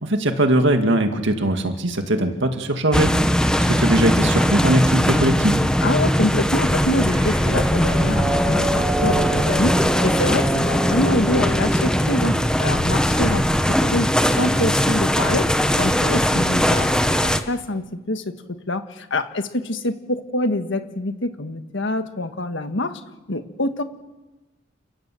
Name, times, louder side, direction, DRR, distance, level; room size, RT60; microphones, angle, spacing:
voice 1, 0.0-3.1 3.6-5.6, right 1 dB, 65° right, 6 dB, 2.2 m, -20 dB
sound 1, 2.9-17.4, equal, 5° left, 1.1 m, -20 dB
voice 2, 5.8-16.9 17.2-23.0 23.3-23.8, left 1 dB, 65° left, 8 dB, 1.6 m, -25 dB
sound 2, 6.9-12.5, right 1 dB, 15° right, 4.5 m, -28 dB
29.5 x 16.5 x 7.8 m, 1.1 s
head